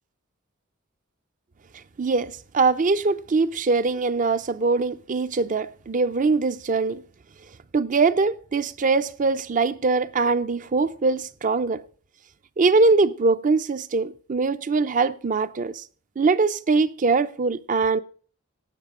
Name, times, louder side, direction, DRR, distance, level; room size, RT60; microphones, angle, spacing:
voice 1, 2.0-7.0 7.7-11.8 12.6-15.8 16.2-18.0, right 4 dB, 40° right, 0.5 m, -22 dB
18.0 x 7.6 x 3.7 m
head